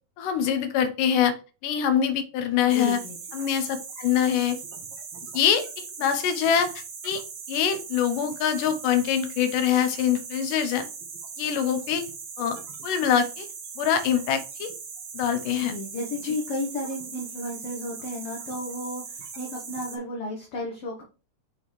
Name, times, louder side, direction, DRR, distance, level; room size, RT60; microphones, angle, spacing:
voice 1, 0.2-1.4 1.6-3.0 3.3-4.6 5.3-6.7 7.0-7.2 7.5-10.9 11.4-12.0 12.4-12.6 12.8-13.5 13.8-14.7 15.1-15.7, left 8 dB, 80° left, 9 dB, 2.4 m, -24 dB
voice 2, 2.6-3.2 15.5-21.0, left 1 dB, 55° left, -2 dB, 1.8 m, -33 dB
sound 1, 2.7-20.0, right 5 dB, 55° right, 1.8 m, -40 dB
7.4 x 4.6 x 3.2 m, 0.34 s
omnidirectional pair, 3.7 m